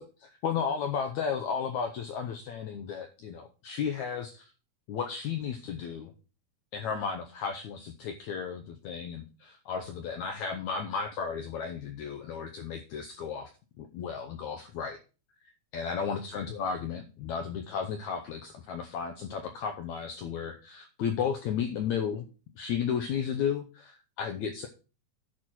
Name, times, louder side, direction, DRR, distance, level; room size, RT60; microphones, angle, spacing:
voice 1, 0.0-4.4 4.9-6.1 6.7-13.5 13.8-15.0 15.7-22.3 22.6-24.7, left 7 dB, 75° left, 6 dB, 1.7 m, -34 dB
11.0 x 4.3 x 6.1 m, 0.34 s
omnidirectional pair, 4.3 m